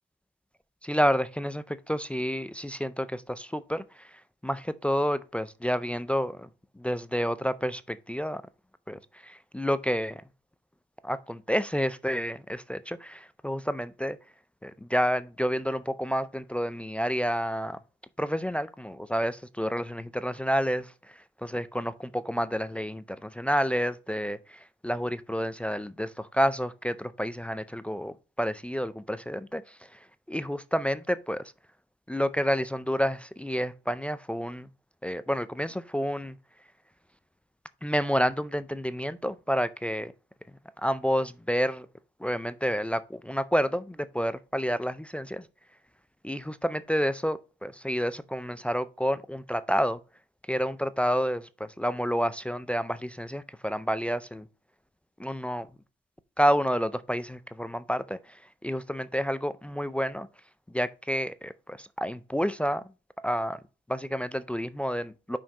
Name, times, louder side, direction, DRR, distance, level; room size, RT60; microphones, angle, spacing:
voice 1, 0.8-4.1 4.4-6.5 6.8-8.4 8.9-10.2 11.0-14.2 14.6-17.8 18.2-30.0 30.3-31.4 32.1-34.7 35.0-36.4 37.8-40.1 40.8-41.9 42.2-45.5 46.2-50.0 50.5-54.5 55.2-55.7 56.4-60.3 60.7-62.8 63.2-63.6 63.9-65.4, equal, 5° left, 0.4 m, -29 dB
5.5 x 5.1 x 4.8 m
cardioid pair, 90°, 20 cm